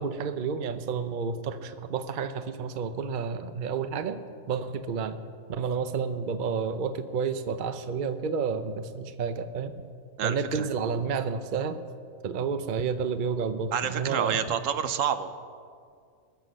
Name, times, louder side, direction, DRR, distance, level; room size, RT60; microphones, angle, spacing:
voice 1, 0.0-5.2 5.5-9.7 10.2-11.8 12.2-14.4, right 5 dB, 45° right, 10 dB, 0.7 m, -30 dB
voice 2, 10.2-10.7 13.7-15.4, right 8 dB, 65° right, 11 dB, 1.1 m, -28 dB
21.0 x 8.0 x 6.5 m, 2.2 s
omnidirectional pair, 1.5 m